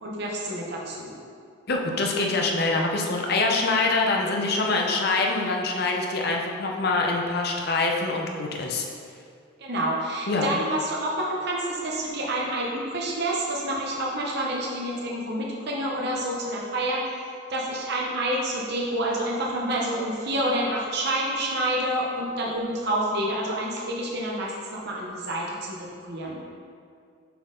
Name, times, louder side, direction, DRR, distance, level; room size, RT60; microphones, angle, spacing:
voice 1, 0.0-1.1 9.6-17.0 17.5-26.4, right 1 dB, 55° right, -3 dB, 0.8 m, -28 dB
voice 2, 1.7-8.8 10.3-10.5, left 3 dB, 55° left, 1 dB, 0.7 m, -25 dB
6.9 x 4.3 x 3.8 m, 2.3 s
head